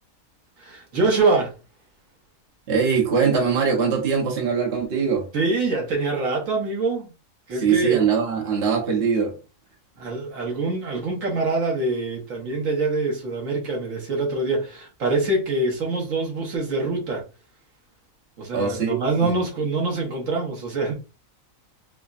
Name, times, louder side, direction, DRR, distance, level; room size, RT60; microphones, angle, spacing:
voice 1, 0.6-1.5 5.3-7.1 7.5-8.0 10.0-17.2 18.4-20.9, right 3 dB, 75° right, 1.5 m, -24 dB
voice 2, 2.7-5.3 7.5-9.3 18.5-19.3, right 6 dB, 50° right, 1.1 m, -22 dB
4.8 x 2.2 x 2.4 m
omnidirectional pair, 1.4 m